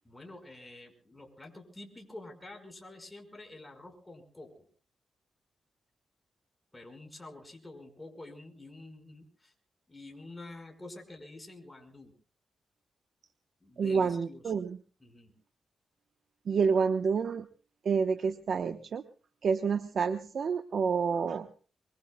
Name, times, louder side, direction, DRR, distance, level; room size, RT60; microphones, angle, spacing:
voice 1, 0.0-4.7 6.7-9.5 9.9-12.1 13.6-14.5 15.0-15.3, left 2 dB, 15° left, 4 dB, 5.3 m, -48 dB
voice 2, 13.8-14.8 16.5-17.5 17.8-19.0 19.4-21.5, right 5 dB, 60° right, 8 dB, 1.0 m, -28 dB
24.5 x 23.5 x 2.3 m, 0.38 s
cardioid pair, 105°, 0 cm